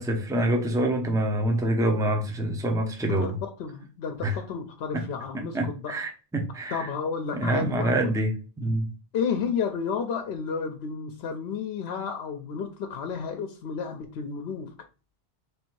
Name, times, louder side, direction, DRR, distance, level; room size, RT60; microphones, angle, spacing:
voice 1, 0.0-3.4 4.2-4.4 4.9-5.0 5.3-6.9 7.3-8.9, right 1 dB, 5° right, 3 dB, 0.5 m, -26 dB
voice 2, 3.1-6.0 6.7-8.1 9.1-14.7, left 6 dB, 75° left, 6 dB, 0.8 m, -32 dB
3.4 x 2.6 x 4.5 m, 0.34 s
omnidirectional pair, 1.1 m